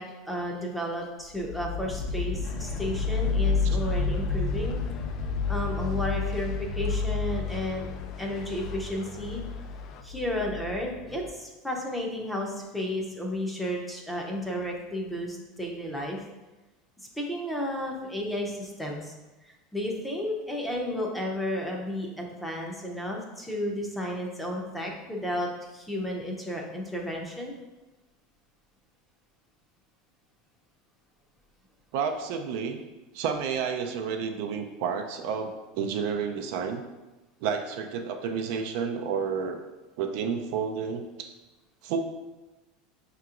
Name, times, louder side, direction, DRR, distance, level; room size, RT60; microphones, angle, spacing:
voice 1, 0.0-4.8 5.5-7.9 8.2-9.4 10.0-16.2 17.0-19.1 19.4-27.5, left 1 dB, 5° left, -1 dB, 0.6 m, -33 dB
sound 1, 1.4-11.3, left 4 dB, 65° left, 0.9 m, -30 dB
sound 2, 2.4-10.0, left 7 dB, 45° left, 0.3 m, -48 dB
voice 2, 31.9-32.8 33.1-36.9 37.4-39.6 40.0-41.3 41.8-42.0, right 6 dB, 65° right, 5 dB, 0.4 m, -30 dB
5.7 x 2.9 x 2.4 m, 1.1 s
supercardioid pair, 135°, 0 cm